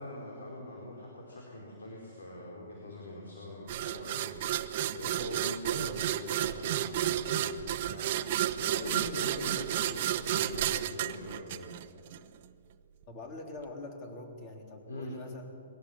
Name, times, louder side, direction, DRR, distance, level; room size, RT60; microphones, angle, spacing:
voice 1, 0.0-11.7 14.9-15.1, left 1 dB, 90° left, -2 dB, 4.9 m, -43 dB
sound 1, 3.7-12.2, right 12 dB, 45° right, 0.9 m, -32 dB
voice 2, 13.1-15.4, left 2 dB, 30° left, 2 dB, 3.7 m, -44 dB
23.0 x 17.0 x 7.3 m, 2.4 s
hypercardioid pair, 150°, 0 cm